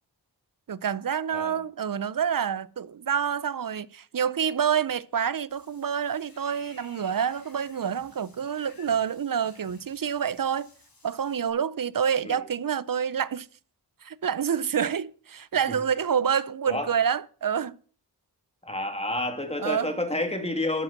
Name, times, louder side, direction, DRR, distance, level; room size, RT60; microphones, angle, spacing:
voice 1, 0.7-10.7 11.0-13.5 14.0-17.8 19.6-19.9, right 8 dB, 55° right, 0.6 m, -27 dB
Water / Bathtub (filling or washing), 5.5-11.5, left 2 dB, 60° left, 4.1 m, -55 dB
voice 2, 18.6-20.8, left 1 dB, 15° left, 2.5 m, -29 dB
12.0 x 7.9 x 5.9 m
wide cardioid pair, 70°, 40 cm